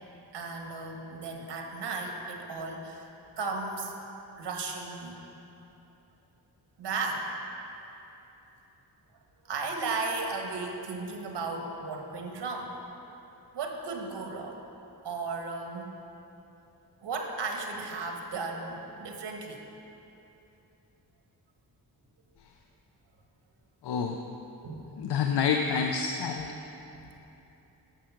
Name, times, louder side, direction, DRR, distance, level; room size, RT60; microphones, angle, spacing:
voice 1, 0.3-3.1 3.4-3.9 4.4-5.2 6.8-7.3 9.4-12.8 13.5-14.6 15.0-15.9 17.0-19.6 24.6-24.9 26.9-27.1, right 3 dB, 90° right, 2 dB, 1.4 m, -35 dB
voice 2, 23.8-24.2 25.0-26.6, left 6 dB, 75° left, 3 dB, 0.7 m, -28 dB
10.0 x 7.4 x 5.9 m, 3.0 s
wide cardioid pair, 140°, 41 cm